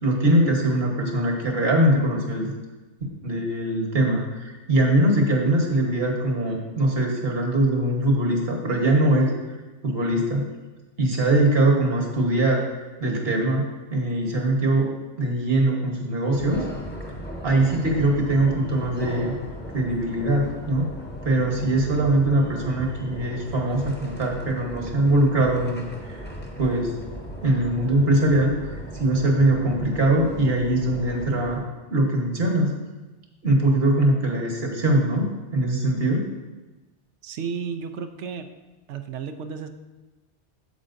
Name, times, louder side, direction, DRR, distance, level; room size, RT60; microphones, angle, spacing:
voice 1, 0.0-2.5 3.0-9.6 9.8-10.5 11.0-12.6 13.0-14.9 15.2-16.7 17.4-19.3 19.7-20.9 21.2-26.2 26.6-26.9 27.4-31.6 31.9-32.7 33.4-36.3, right 1 dB, 55° right, 0 dB, 1.5 m, -22 dB
sound 1, 16.3-31.6, equal, 10° left, 0.9 m, -37 dB
voice 2, 37.2-38.5 38.9-39.7, right 6 dB, 80° right, 7 dB, 0.9 m, -32 dB
8.8 x 7.2 x 2.6 m, 1.2 s
omnidirectional pair, 1.2 m